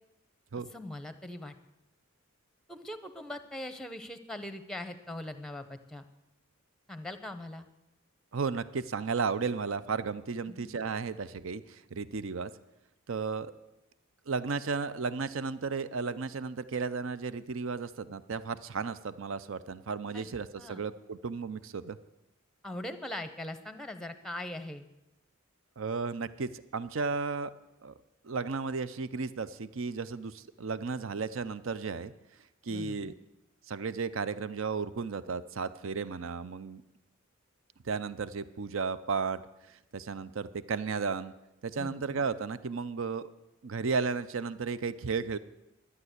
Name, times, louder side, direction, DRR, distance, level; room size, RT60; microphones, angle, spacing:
voice 1, 0.7-1.5 2.7-6.0 6.9-7.7 10.5-10.7 20.1-20.3 20.6-20.8 22.6-24.9 32.7-33.1 41.8-42.2, left 1 dB, ahead, 10 dB, 0.8 m, -41 dB
voice 2, 8.3-12.5 13.1-13.5 14.3-22.0 25.8-27.5 27.8-27.9 28.2-32.1 32.6-33.1 33.7-36.8 37.8-39.4 39.9-41.3 41.6-43.3 43.6-45.4, right 5 dB, 65° right, 15 dB, 0.6 m, -34 dB
12.5 x 9.6 x 8.0 m, 0.93 s
head